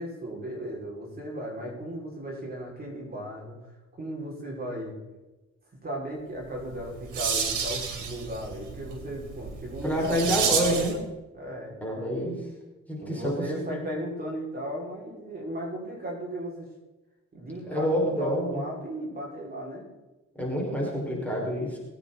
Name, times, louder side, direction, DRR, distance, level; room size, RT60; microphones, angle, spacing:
voice 1, 0.0-5.0 5.8-10.9 11.3-11.8 13.0-16.7 17.3-19.9, equal, 30° right, -3 dB, 5.8 m, -36 dB
sound 1, 6.6-11.0, right 6 dB, 80° right, 3.0 m, -31 dB
voice 2, 9.8-11.0 11.8-12.4 12.9-13.9 17.7-18.6 20.4-21.8, equal, 5° left, -3 dB, 5.6 m, -28 dB
22.0 x 9.2 x 4.2 m, 1.1 s
cardioid pair, 90°, 30 cm